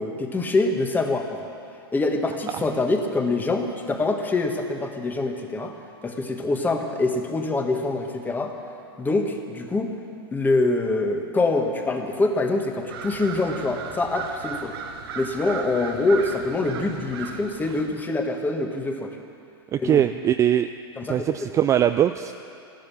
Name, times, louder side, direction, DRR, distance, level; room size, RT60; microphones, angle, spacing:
voice 1, 0.0-1.5 1.9-5.7 6.0-8.5 9.0-9.9 10.3-14.8 15.1-19.2 19.8-20.0 21.0-21.3, left 2 dB, 15° left, 4 dB, 1.4 m, -25 dB
sound 1, 12.9-17.9, right 6 dB, 70° right, 1.4 m, -36 dB
voice 2, 19.7-20.7 21.1-22.3, right 10 dB, 20° right, 9 dB, 0.3 m, -21 dB
14.0 x 12.0 x 7.0 m, 2.5 s
hypercardioid pair, 120°, 13 cm